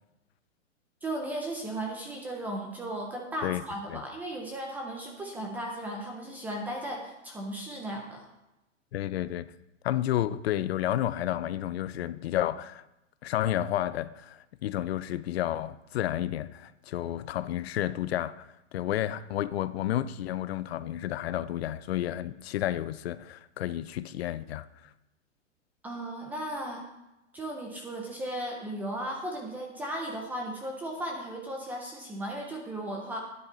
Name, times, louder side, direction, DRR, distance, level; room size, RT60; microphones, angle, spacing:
voice 1, 1.0-8.3 25.8-26.9 27.3-33.2, right 1 dB, 5° right, 0.4 m, -36 dB
voice 2, 8.9-9.5 9.8-12.8 13.2-24.9, left 12 dB, 55° left, 0.5 m, -31 dB
11.5 x 9.9 x 3.9 m
hypercardioid pair, 150°, 38 cm